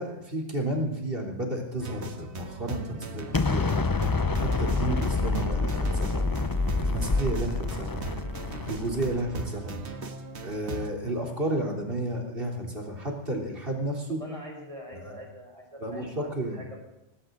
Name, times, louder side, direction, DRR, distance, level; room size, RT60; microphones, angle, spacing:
voice 1, 0.0-3.9 4.4-6.2 6.8-8.0 8.7-9.8 10.4-14.2 14.9-15.2 15.8-16.6, right 1 dB, 55° right, 1 dB, 3.6 m, -32 dB
sound 1, 1.8-10.9, right 3 dB, 75° right, 1.7 m, -39 dB
Explosion, 3.3-9.3, left 3 dB, 25° left, 0.6 m, -27 dB
voice 2, 14.1-16.8, equal, 30° right, -1 dB, 6.2 m, -44 dB
19.5 x 16.5 x 3.9 m, 0.92 s
omnidirectional pair, 1.2 m